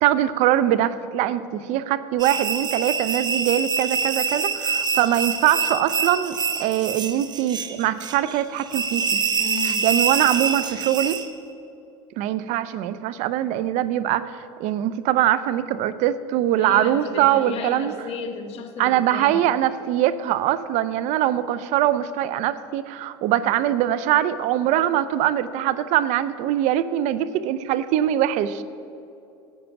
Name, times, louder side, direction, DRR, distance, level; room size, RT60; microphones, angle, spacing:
voice 1, 0.0-9.2 9.6-11.2 12.2-17.9 18.8-28.6, right 12 dB, 60° right, 15 dB, 0.5 m, -22 dB
sound 1, 2.2-11.3, right 6 dB, 30° right, 0.8 m, -26 dB
voice 2, 9.4-9.9 16.6-19.4, left 4 dB, 45° left, 5 dB, 1.5 m, -33 dB
10.5 x 8.7 x 5.9 m, 2.7 s
supercardioid pair, 95°, 14 cm